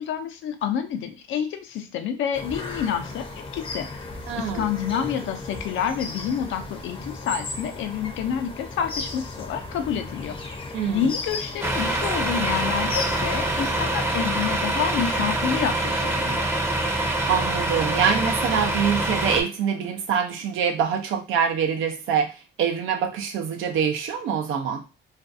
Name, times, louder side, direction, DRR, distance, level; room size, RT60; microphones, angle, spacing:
voice 1, 0.0-3.3 3.5-3.9 4.4-10.4 10.9-16.5, left 8 dB, 75° left, 7 dB, 0.5 m, -28 dB
sound 1, 2.3-13.9, left 3 dB, 30° left, 0.6 m, -35 dB
voice 2, 4.3-4.6 10.7-11.1 17.3-22.3 22.6-24.8, right 7 dB, 85° right, 4 dB, 0.6 m, -25 dB
Truck, 11.6-19.4, right 1 dB, 10° right, 0.6 m, -25 dB
2.5 x 2.3 x 2.5 m, 0.31 s
cardioid pair, 90°, 20 cm